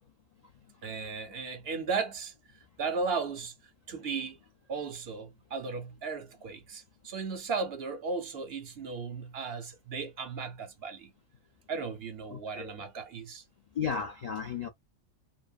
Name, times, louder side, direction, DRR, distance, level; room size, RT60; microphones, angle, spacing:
voice 1, 0.8-2.3 2.8-3.5 3.9-4.4 4.7-11.1 11.7-13.4, right 4 dB, 55° right, 0.9 m, -35 dB
voice 2, 12.3-12.8 13.7-14.7, left 6 dB, 90° left, 0.3 m, -35 dB
2.5 x 2.5 x 2.3 m
omnidirectional pair, 1.3 m